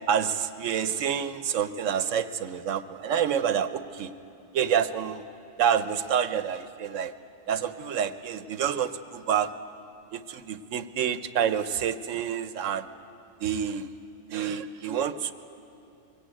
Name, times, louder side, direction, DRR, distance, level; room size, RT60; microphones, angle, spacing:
voice 1, 0.1-4.1 4.5-5.2 5.6-7.1 7.5-9.5 10.1-12.9 13.4-13.9 14.3-15.3, right 8 dB, 85° right, 12 dB, 1.1 m, -28 dB
22.5 x 17.5 x 9.0 m, 2.7 s
omnidirectional pair, 1.3 m